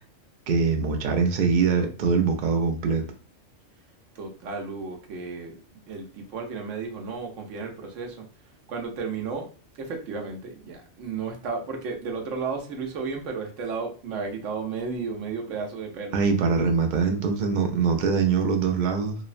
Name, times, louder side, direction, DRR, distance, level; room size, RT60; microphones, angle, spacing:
voice 1, 0.5-3.0 16.1-19.2, right 5 dB, 65° right, 4 dB, 0.5 m, -23 dB
voice 2, 4.2-8.3 8.7-9.5 9.8-16.2, right 4 dB, 85° right, 2 dB, 1.0 m, -33 dB
3.0 x 2.0 x 2.4 m, 0.38 s
omnidirectional pair, 1.3 m